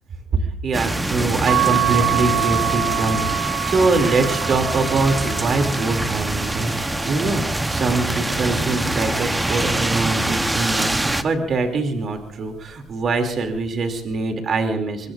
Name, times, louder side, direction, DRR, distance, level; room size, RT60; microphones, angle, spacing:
voice 1, 0.6-15.1, right 3 dB, 45° right, 5 dB, 2.6 m, -23 dB
sound 1, 0.7-11.2, right 1 dB, 10° right, 0.9 m, -24 dB
sound 2, 1.5-8.1 8.7-10.1 11.4-11.8 12.1-12.2, right 10 dB, 60° right, 2.2 m, -27 dB
24.0 x 23.5 x 2.5 m, 0.66 s
cardioid pair, 130°, 0 cm